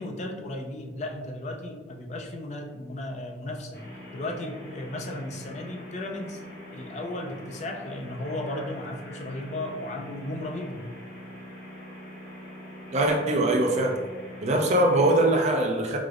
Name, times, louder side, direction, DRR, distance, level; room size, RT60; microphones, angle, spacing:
voice 1, 0.0-3.8 4.1-6.4 6.7-10.8, left 1 dB, 40° left, 2 dB, 0.4 m, -35 dB
sound 1, 3.7-15.3, equal, 55° left, 1.0 m, -43 dB
voice 2, 12.9-14.0 14.4-16.0, right 1 dB, 40° right, 2 dB, 0.4 m, -22 dB
4.9 x 2.0 x 2.4 m, 1.3 s
head